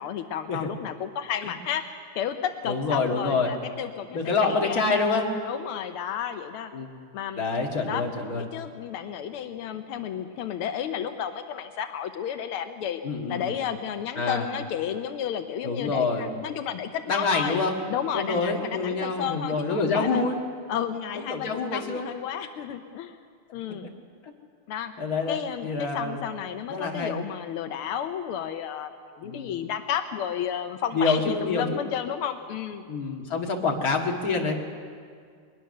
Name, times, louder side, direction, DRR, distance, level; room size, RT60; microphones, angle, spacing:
voice 1, 0.0-1.8 2.1-4.9 5.4-6.7 7.1-7.4 7.8-8.0 8.3-13.0 13.3-17.6 17.9-20.2 20.7-23.2 23.5-23.9 24.7-24.9 25.3-32.8, left 9 dB, 85° left, 8 dB, 1.7 m, -32 dB
voice 2, 2.7-3.5 4.1-5.2 6.7-6.9 7.4-8.4 13.0-13.5 14.2-14.5 15.6-16.3 17.1-17.7 18.1-20.4 21.2-22.1 25.0-26.2 26.7-27.2 29.2-29.5 30.9-31.8 32.9-34.5, left 4 dB, 45° left, 0 dB, 2.4 m, -26 dB
22.0 x 20.5 x 6.6 m, 2.1 s
omnidirectional pair, 2.3 m